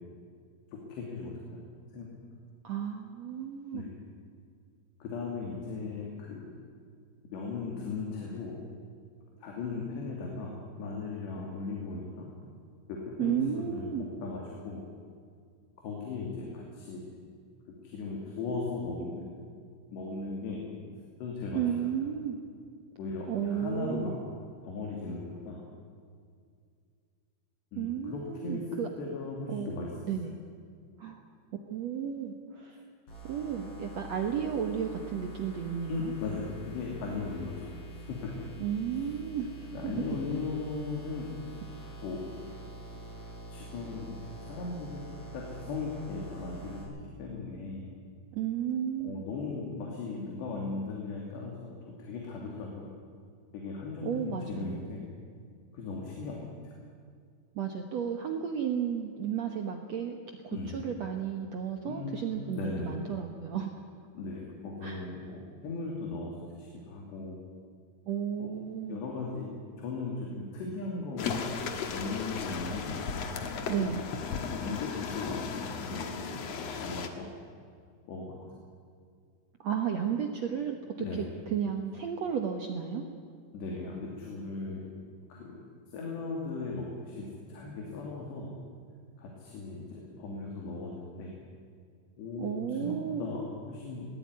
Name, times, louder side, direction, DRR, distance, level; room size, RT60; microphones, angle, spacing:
voice 1, 0.7-1.3 1.9-2.1 3.7-3.9 5.0-6.5 7.2-8.6 9.4-10.5 10.8-12.3 12.9-14.8 15.8-17.0 17.8-19.2 19.9-20.6 21.2-21.6 23.0-24.2 24.6-25.6 27.7-29.9 35.9-38.3 39.7-41.3 42.0-42.2 43.5-44.2 44.5-45.0 45.3-47.9 49.0-52.9 53.5-55.0 55.7-56.7 60.5-60.8 61.8-62.9 64.2-67.4 68.4-68.5 68.9-69.5 69.8-71.3 71.9-72.9 74.5-75.4 75.7-76.1 76.6-77.3 78.1-78.3 81.0-81.3 83.5-84.8 85.3-85.6 85.9-88.5 89.2-91.3 92.2-94.1, left 3 dB, 85° left, -1 dB, 4.9 m, -37 dB
voice 2, 2.6-3.8 13.2-14.1 21.5-22.4 23.3-24.2 27.8-28.9 29.5-29.7 30.1-30.4 31.0-31.2 31.7-32.8 33.2-36.1 38.6-40.0 48.3-49.2 54.0-54.9 57.5-63.8 64.8-65.1 68.1-69.0 73.7-74.0 79.6-80.8 81.2-83.0 92.4-93.3, right 8 dB, 70° right, 4 dB, 1.6 m, -33 dB
sound 1, 33.1-46.8, right 2 dB, 35° left, 8.2 m, -46 dB
sound 2, 71.2-77.1, left 5 dB, 60° left, 1.8 m, -35 dB
20.5 x 18.5 x 9.6 m, 2.2 s
omnidirectional pair, 4.8 m